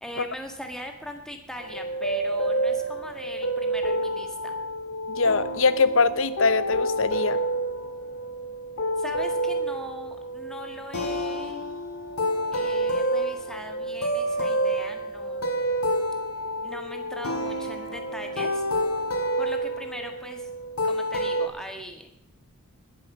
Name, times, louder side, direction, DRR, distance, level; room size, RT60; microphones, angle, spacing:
voice 1, 0.0-4.6 9.0-11.7 12.5-15.6 16.6-18.6 19.4-20.5 20.8-22.1, equal, 5° left, 4 dB, 1.6 m, -40 dB
sound 1, 1.6-21.5, right 1 dB, 85° left, 2.1 m, -28 dB
voice 2, 5.1-7.4, left 4 dB, 65° left, 15 dB, 0.8 m, -22 dB
20.5 x 7.8 x 6.1 m, 0.76 s
head